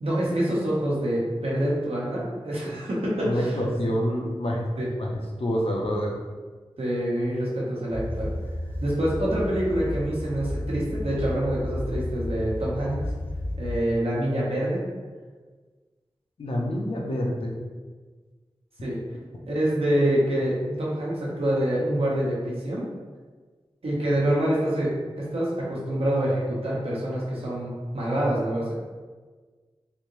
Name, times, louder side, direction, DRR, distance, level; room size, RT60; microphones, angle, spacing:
voice 1, 0.0-3.6 4.8-4.9 6.8-8.3 8.8-13.1 13.6-14.8 18.8-19.0 19.5-22.9 23.8-24.9 25.2-28.7, right 1 dB, 80° right, -6 dB, 1.0 m, -26 dB
voice 2, 3.2-4.7 5.0-6.2 16.4-17.6, equal, 75° left, -1 dB, 0.6 m, -27 dB
sound 1, 7.9-13.8, left 1 dB, 20° left, 0.6 m, -32 dB
3.4 x 2.6 x 3.0 m, 1.4 s
wide cardioid pair, 70°, 10 cm